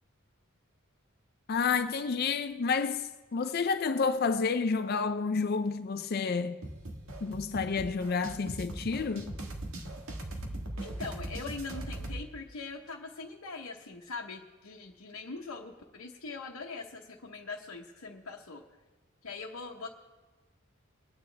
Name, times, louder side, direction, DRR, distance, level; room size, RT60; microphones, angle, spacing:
voice 1, 1.5-6.6 7.2-9.3, left 5 dB, 45° left, 0.4 m, -30 dB
sound 1, 6.6-12.2, right 1 dB, 90° right, 1.5 m, -40 dB
voice 2, 10.7-18.6 19.2-19.9, left 4 dB, 80° left, 1.0 m, -42 dB
22.5 x 9.2 x 3.4 m
head